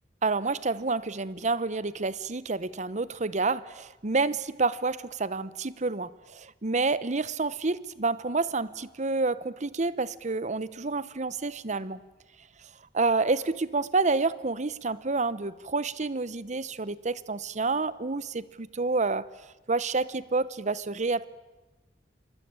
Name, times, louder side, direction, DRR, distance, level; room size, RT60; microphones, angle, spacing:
voice 1, 0.2-12.0 12.9-19.3 19.7-21.3, right 3 dB, 40° right, 18 dB, 0.9 m, -29 dB
27.5 x 22.5 x 8.9 m, 1.1 s
head